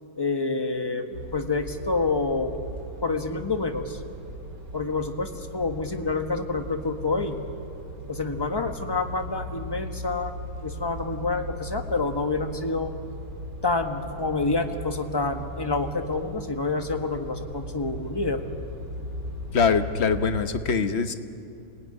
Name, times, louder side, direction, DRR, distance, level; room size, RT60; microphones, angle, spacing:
voice 1, 0.2-2.6 3.0-4.0 4.7-7.5 8.1-10.3 10.6-12.9 13.6-18.4, left 3 dB, 15° left, 5 dB, 1.4 m, -28 dB
sound 1, 1.1-20.5, equal, 85° right, 4.6 m, -38 dB
voice 2, 19.5-21.1, left 5 dB, 45° left, 9 dB, 1.2 m, -23 dB
26.5 x 19.5 x 9.9 m, 2.6 s
omnidirectional pair, 1.8 m